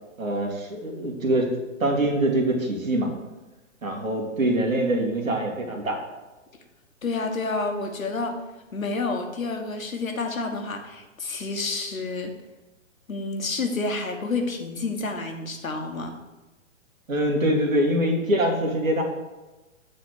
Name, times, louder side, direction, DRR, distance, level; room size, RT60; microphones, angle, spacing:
voice 1, 0.2-3.1 3.8-6.0 17.1-19.0, right 1 dB, 85° right, 1 dB, 2.2 m, -24 dB
voice 2, 7.0-8.4 8.7-12.3 13.1-16.1, left 3 dB, 85° left, 4 dB, 1.4 m, -29 dB
7.7 x 4.2 x 6.2 m, 1.1 s
hypercardioid pair, 130°, 40 cm